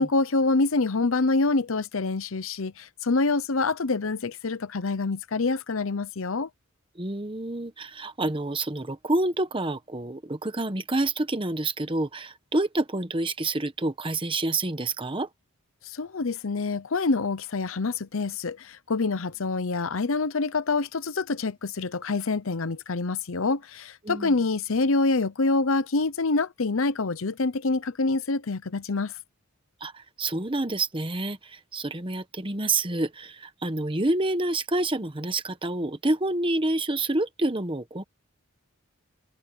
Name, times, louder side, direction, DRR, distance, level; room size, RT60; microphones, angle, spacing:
voice 1, 0.0-6.5 15.8-29.1, left 3 dB, 65° left, 0.8 m, -26 dB
voice 2, 6.9-15.3 24.0-24.3 29.8-38.0, right 2 dB, 25° right, 1.1 m, -28 dB
head